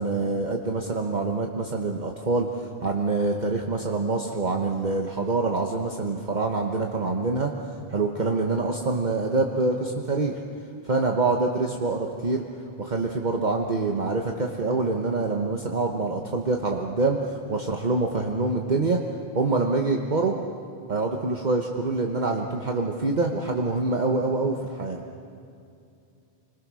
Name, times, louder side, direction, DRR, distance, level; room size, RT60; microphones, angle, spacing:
voice 1, 0.0-7.5 7.9-10.4 10.8-12.4 12.8-19.0 19.3-20.4 20.9-25.0, right 3 dB, 45° right, 1 dB, 1.3 m, -25 dB
29.5 x 21.0 x 6.3 m, 2.6 s
omnidirectional pair, 1.1 m